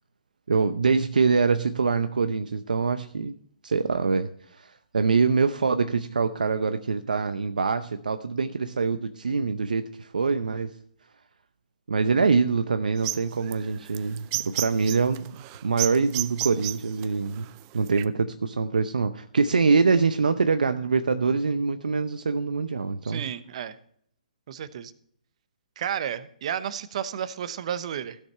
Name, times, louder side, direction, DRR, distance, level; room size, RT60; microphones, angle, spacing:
voice 1, 0.5-3.3 3.6-10.7 11.9-17.5 17.7-23.3, right 4 dB, 80° right, 9 dB, 0.7 m, -24 dB
sound 1, 13.0-18.0, right 17 dB, 30° right, 0.5 m, -32 dB
voice 2, 23.0-23.8 24.5-24.9 25.8-28.2, right 9 dB, 50° right, 14 dB, 0.9 m, -32 dB
16.0 x 6.7 x 4.3 m, 0.64 s
hypercardioid pair, 140°, 4 cm